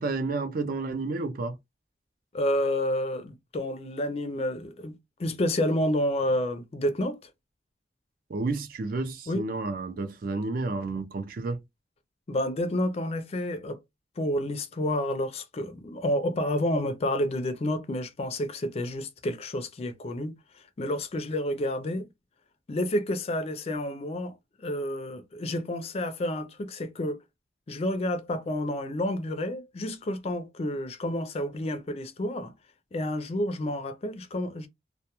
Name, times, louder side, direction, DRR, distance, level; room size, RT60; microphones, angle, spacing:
voice 1, 0.0-1.6 8.3-11.6, right 3 dB, 50° right, 0.4 m, -31 dB
voice 2, 2.3-4.9 5.2-7.2 9.3-9.4 12.3-13.8 14.2-20.3 20.8-22.1 22.7-24.3 24.6-27.2 27.7-32.5 32.9-34.7, left 1 dB, 35° left, 0.4 m, -29 dB
2.1 x 2.1 x 2.8 m
head